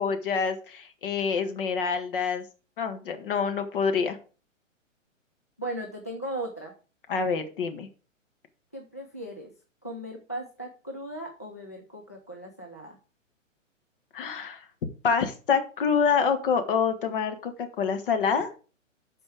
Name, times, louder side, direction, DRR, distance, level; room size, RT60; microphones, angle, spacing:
voice 1, 0.0-2.4 2.8-4.2 7.1-7.9 14.1-14.6 15.0-18.5, left 6 dB, 40° left, 7 dB, 1.6 m, -26 dB
voice 2, 5.6-6.7 8.7-9.5 9.8-13.0, right 1 dB, 15° left, 0 dB, 0.3 m, -37 dB
12.0 x 4.5 x 4.8 m, 0.35 s
figure-of-eight pair, 120°, 39 cm